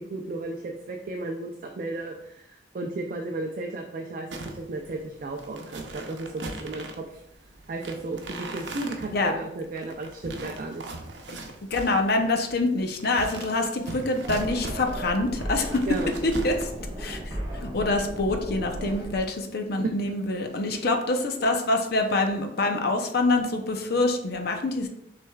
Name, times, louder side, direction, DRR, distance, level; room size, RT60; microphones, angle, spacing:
voice 1, 0.0-7.2 7.7-10.8 15.9-16.1, right 2 dB, 50° right, 2 dB, 0.4 m, -34 dB
sound 1, 4.3-17.1, right 2 dB, 90° right, 0.7 m, -40 dB
voice 2, 11.7-15.9 16.2-16.7 17.0-24.9, left 2 dB, 60° left, 4 dB, 0.6 m, -26 dB
sound 2, 14.2-19.2, equal, 25° right, 1.4 m, -35 dB
6.2 x 3.4 x 2.3 m, 0.79 s
head